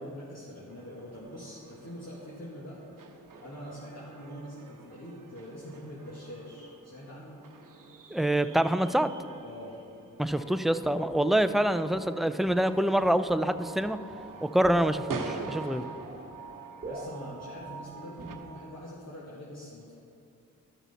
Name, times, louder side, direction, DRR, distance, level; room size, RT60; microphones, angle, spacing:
voice 1, 0.1-7.4 9.4-9.7 16.8-19.9, equal, 50° left, -6 dB, 1.7 m, -44 dB
sound 1, 0.7-18.4, right 4 dB, 70° right, 0.9 m, -46 dB
voice 2, 8.1-9.1 10.2-14.0 14.4-15.8, right 1 dB, ahead, 11 dB, 0.4 m, -26 dB
sound 2, 10.3-19.0, right 2 dB, 25° right, 1.3 m, -45 dB
12.5 x 6.0 x 4.1 m, 2.5 s
cardioid pair, 45°, 33 cm